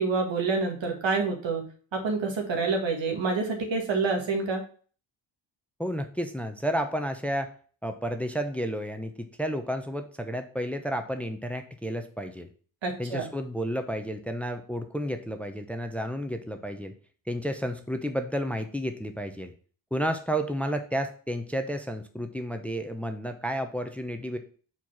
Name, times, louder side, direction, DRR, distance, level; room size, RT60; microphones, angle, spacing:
voice 1, 0.0-1.7 1.9-4.6 12.8-13.3, right 4 dB, 70° right, 3 dB, 1.9 m, -27 dB
voice 2, 5.8-7.5 7.8-12.5 13.0-16.9 17.3-19.5 19.9-24.4, equal, 5° left, 7 dB, 0.8 m, -31 dB
4.6 x 4.5 x 5.9 m, 0.42 s
cardioid pair, 55°, 47 cm